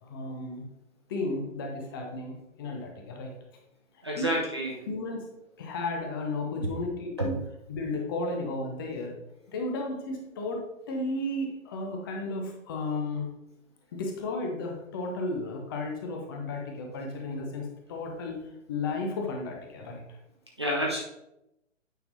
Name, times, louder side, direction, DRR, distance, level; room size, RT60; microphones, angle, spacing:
voice 1, 0.0-0.7 1.1-3.3 4.2-4.4 4.9-5.3 5.6-7.4 7.7-9.2 9.5-13.3 13.9-20.0, left 2 dB, 15° left, 2 dB, 0.8 m, -34 dB
voice 2, 4.0-4.7 7.2-7.3 20.6-21.0, equal, 20° right, -3 dB, 0.4 m, -28 dB
9.1 x 6.0 x 2.7 m, 0.88 s
figure-of-eight pair, 130°, 39 cm